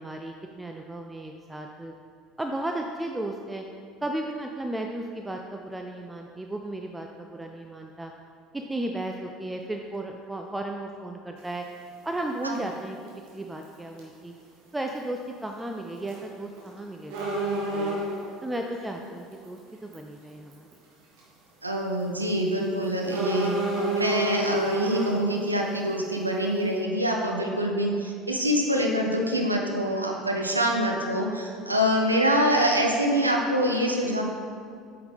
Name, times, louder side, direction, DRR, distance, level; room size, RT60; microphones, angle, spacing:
voice 1, 0.0-1.9 2.4-3.6 4.0-8.1 8.5-11.7 12.0-13.0 13.3-14.3 14.7-17.4 17.7-18.0 18.4-20.7, right 1 dB, 10° right, 3 dB, 0.5 m, -34 dB
sound 1, 11.4-11.5 13.1-13.3 13.6-13.7 14.0-14.1 16.0-16.3 16.6-16.7 17.1-18.3 19.3-19.5 19.9-20.0 20.5-20.7 21.2-21.3 23.1-25.2, right 2 dB, 60° right, 1.6 m, -28 dB
voice 2, 21.6-23.6 23.9-34.2, equal, 90° right, 1 dB, 0.7 m, -25 dB
8.6 x 5.8 x 3.5 m, 2.3 s
figure-of-eight pair, 65°, 0 cm